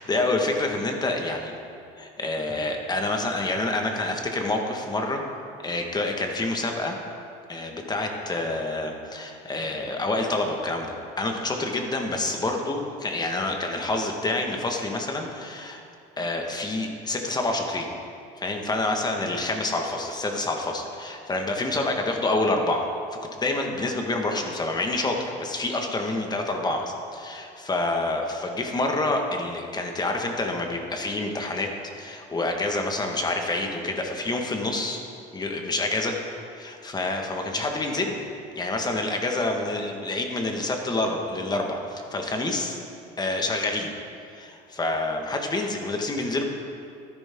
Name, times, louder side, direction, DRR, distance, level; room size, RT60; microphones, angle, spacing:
voice 1, 0.0-1.5 2.0-5.2 5.6-7.0 7.5-15.8 16.2-17.9 18.4-22.9 23.4-31.7 32.0-35.0 35.3-36.2 36.5-38.2 38.5-42.8 43.2-43.9 44.3-46.4, left 2 dB, 25° left, 2 dB, 1.6 m, -27 dB
13.0 x 10.5 x 3.8 m, 2.5 s
supercardioid pair, 85°, 18 cm